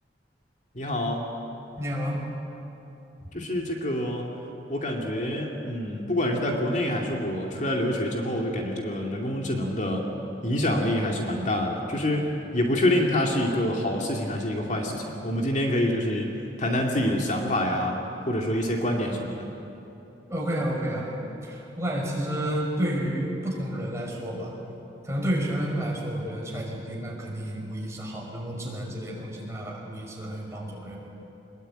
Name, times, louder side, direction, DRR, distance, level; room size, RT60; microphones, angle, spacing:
voice 1, 0.7-1.3 3.3-4.3 4.7-10.1 10.4-16.3 16.6-18.0 18.3-19.5, left 1 dB, 40° left, 0 dB, 2.5 m, -26 dB
voice 2, 1.8-2.2 20.3-24.6 25.0-31.0, equal, 15° right, -2 dB, 5.5 m, -30 dB
25.5 x 21.5 x 9.1 m, 3.0 s
head